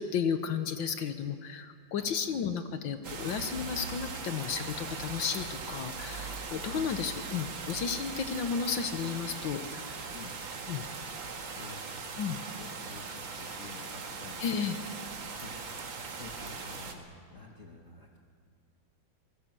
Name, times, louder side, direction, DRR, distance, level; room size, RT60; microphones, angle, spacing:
voice 1, 0.0-10.1 10.7-10.8 12.2-12.4 14.4-14.8, left 7 dB, 70° left, 9 dB, 1.6 m, -33 dB
sound 1, 3.0-16.9, right 4 dB, 70° right, 2.6 m, -40 dB
voice 2, 11.5-12.0 12.4-14.4 15.4-15.6 16.2-18.2, left 3 dB, 40° left, 0 dB, 1.8 m, -49 dB
27.0 x 18.5 x 7.5 m, 2.2 s
omnidirectional pair, 2.3 m